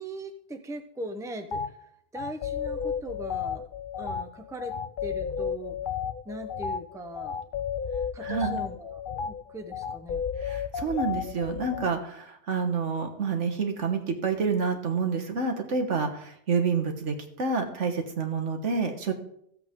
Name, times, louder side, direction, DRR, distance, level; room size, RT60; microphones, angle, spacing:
voice 1, 0.0-1.6 2.1-3.6 4.0-4.7 5.0-5.8 6.3-7.4 8.1-10.2, right 1 dB, 5° right, 7 dB, 0.7 m, -40 dB
sound 1, 1.5-1.7 2.1-11.9, left 7 dB, 55° left, 0.7 m, -33 dB
voice 2, 8.2-8.6 10.4-19.1, right 5 dB, 85° right, 5 dB, 1.7 m, -28 dB
15.0 x 7.8 x 3.7 m, 0.71 s
omnidirectional pair, 1.2 m